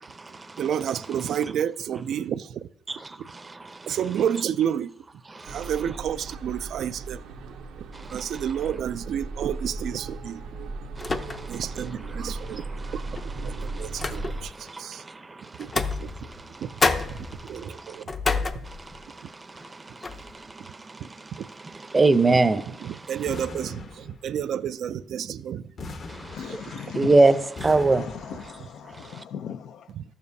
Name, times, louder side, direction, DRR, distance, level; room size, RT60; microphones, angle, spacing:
voice 1, 0.0-0.7 2.9-4.0 5.3-5.7 7.9-8.5 11.0-18.0 18.6-23.5 26.1-28.1 28.9-29.2, right 3 dB, 25° right, 12 dB, 0.6 m, -27 dB
voice 2, 0.6-2.6 3.9-4.9 5.5-7.2 8.1-10.4 11.5-12.6 13.4-13.5 13.8-14.5 14.8-15.0 15.6-15.7 16.0-16.1 16.6-16.7 17.5-18.1 21.0-21.1 22.8-25.6 30.0-30.1, right 9 dB, 70° right, 15 dB, 0.3 m, -30 dB
sound 1, 5.4-14.4, right 3 dB, 85° right, 0.8 m, -37 dB
sound 2, 9.6-10.0 11.0-11.7 12.1-12.2 13.1-14.6 15.6-16.5 16.8-19.1 19.6-19.7 20.0-20.4, left 3 dB, 35° left, 0.6 m, -29 dB
sound 3, 23.3-24.5 25.8-27.0 27.6-28.7, left 3 dB, 50° left, 1.0 m, -40 dB
voice 3, 26.3-27.2 27.9-29.9, left 8 dB, 80° left, 12 dB, 0.5 m, -38 dB
13.0 x 6.9 x 2.7 m, 0.74 s
cardioid pair, 90°, 0 cm